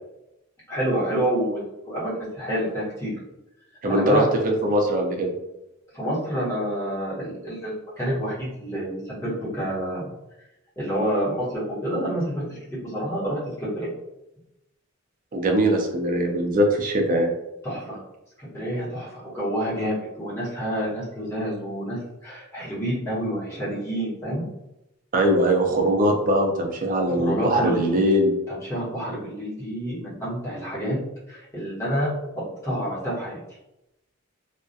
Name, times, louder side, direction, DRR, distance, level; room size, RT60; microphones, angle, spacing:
voice 1, 0.7-3.2 3.9-4.3 5.9-10.1 10.8-13.9 17.6-18.0 18.4-24.4 27.1-27.9 28.5-31.0 31.3-33.4, equal, 15° left, -9 dB, 1.0 m, -28 dB
voice 2, 3.8-5.3 15.3-17.3 25.1-28.3, right 1 dB, 40° right, 2 dB, 0.4 m, -21 dB
2.3 x 2.1 x 2.6 m, 0.90 s
head